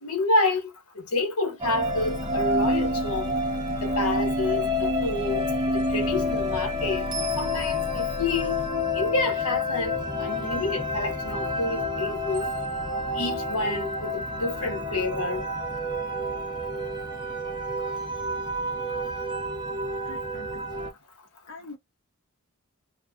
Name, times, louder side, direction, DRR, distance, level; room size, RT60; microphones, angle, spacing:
voice 1, 0.0-3.3 3.8-7.1 7.4-8.6 8.9-12.5 13.1-15.4, left 2 dB, 75° left, 1.1 m, -29 dB
sound 1, 1.6-20.9, left 1 dB, 20° right, 0.8 m, -29 dB
Engine, 1.8-8.7, left 3 dB, 30° left, 0.3 m, -39 dB
voice 2, 20.0-20.7 21.5-21.8, left 2 dB, 55° left, 0.7 m, -43 dB
2.6 x 2.3 x 3.4 m
head